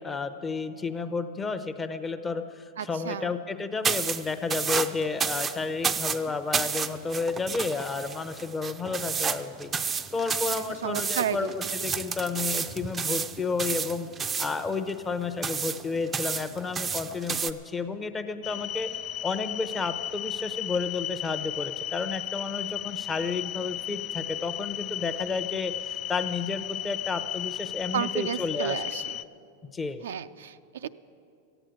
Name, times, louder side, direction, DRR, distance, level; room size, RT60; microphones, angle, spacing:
voice 1, 0.0-14.1 14.4-18.9 19.2-28.8 29.7-30.1, left 4 dB, 15° left, 9 dB, 0.7 m, -31 dB
voice 2, 2.8-3.3 10.5-11.5 27.9-29.2 30.0-30.9, right 9 dB, 90° right, 11 dB, 0.4 m, -32 dB
sound 1, 3.8-17.5, right 6 dB, 20° right, 0.5 m, -31 dB
sound 2, 18.4-29.2, left 12 dB, 40° left, 0.3 m, -35 dB
14.0 x 9.0 x 9.3 m, 2.4 s
supercardioid pair, 135°, 0 cm